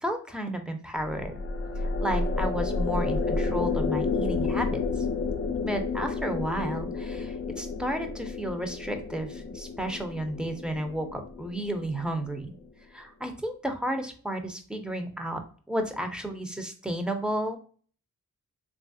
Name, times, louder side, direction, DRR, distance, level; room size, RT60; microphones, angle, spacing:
voice 1, 0.0-1.3 1.8-5.0 5.6-12.5 12.9-15.4 15.7-17.6, right 1 dB, 5° right, 5 dB, 0.7 m, -32 dB
sound 1, 1.0-12.4, left 4 dB, 45° left, 0.5 m, -31 dB
3.1 x 2.4 x 2.6 m, 0.42 s
cardioid pair, 50°, 34 cm